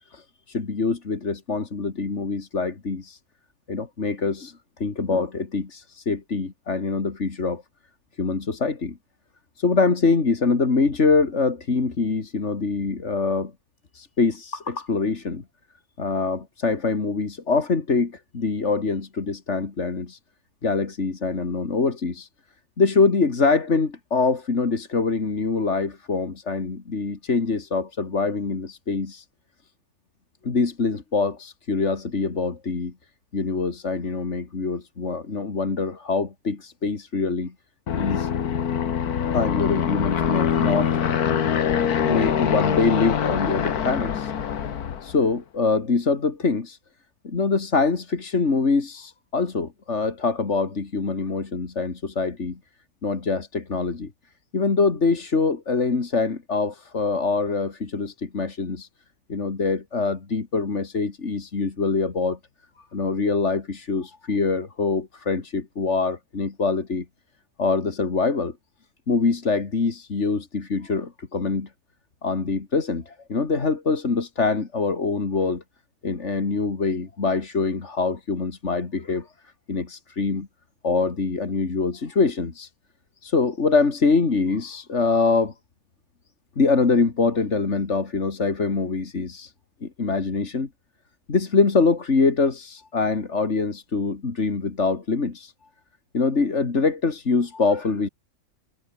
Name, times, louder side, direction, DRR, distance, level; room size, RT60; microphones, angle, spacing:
voice 1, 0.0-3.2 3.7-7.6 8.2-9.0 9.6-13.5 13.9-15.4 16.0-20.2 20.6-22.3 22.8-29.3 30.4-32.9 33.3-37.5 37.9-38.3 39.3-41.1 42.0-44.3 45.0-46.8 47.2-52.6 53.0-54.1 54.5-58.9 59.3-62.4 62.9-67.1 67.6-68.6 69.1-71.7 72.2-75.6 76.0-79.3 79.7-80.5 80.8-82.7 83.2-85.5 86.6-89.5 89.8-90.7 91.3-95.5 96.1-98.1, left 4 dB, 50° left, 2.5 m, -24 dB
Aircraft, 37.9-45.2, left 8 dB, 80° left, 1.8 m, -24 dB
omnidirectional pair, 1.6 m